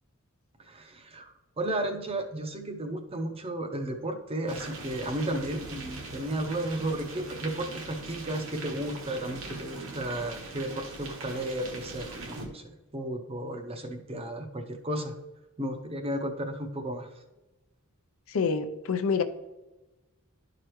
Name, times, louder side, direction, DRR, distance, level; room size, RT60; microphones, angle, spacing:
voice 1, 0.6-15.2 15.6-17.2, right 1 dB, 25° right, 4 dB, 0.6 m, -34 dB
sound 1, 4.5-12.5, right 2 dB, 65° right, 1.2 m, -41 dB
voice 2, 18.3-19.2, left 5 dB, 70° left, 9 dB, 0.5 m, -27 dB
12.0 x 4.8 x 3.0 m, 1.1 s
head